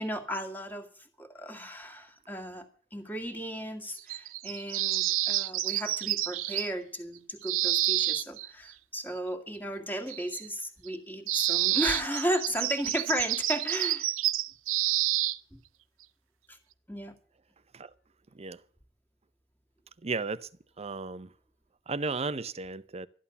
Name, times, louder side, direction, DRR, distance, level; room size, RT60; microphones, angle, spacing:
voice 1, 0.0-14.1 15.5-15.6 16.5-16.6 16.9-17.1, equal, 10° left, 2.0 m, -35 dB
sound 1, 4.0-6.7 7.4-8.5 10.1-10.5 10.9-11.0 11.3-15.4, right 15 dB, 90° right, 0.6 m, -29 dB
voice 2, 20.0-20.5 20.8-21.3 21.9-23.1, right 4 dB, 30° right, 0.7 m, -34 dB
13.0 x 11.0 x 7.0 m
head